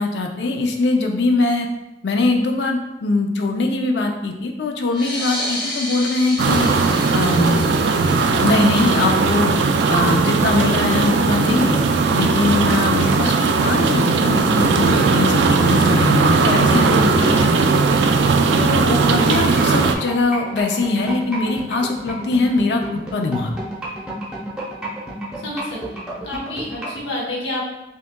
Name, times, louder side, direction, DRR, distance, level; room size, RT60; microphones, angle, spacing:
voice 1, 0.0-1.7 2.0-6.7 7.1-7.7 8.4-9.5 9.9-11.8 12.1-17.8 18.5-23.6, left 3 dB, 70° left, 3 dB, 0.5 m, -21 dB
sound 1, 4.9-10.0, left 1 dB, 25° left, 1.0 m, -32 dB
sound 2, 6.4-20.0, right 4 dB, 70° right, 0.3 m, -17 dB
sound 3, 19.3-27.0, right 2 dB, 5° right, 0.7 m, -31 dB
voice 2, 25.4-27.6, left 1 dB, 85° left, -4 dB, 1.0 m, -29 dB
5.5 x 2.3 x 2.2 m, 0.97 s
head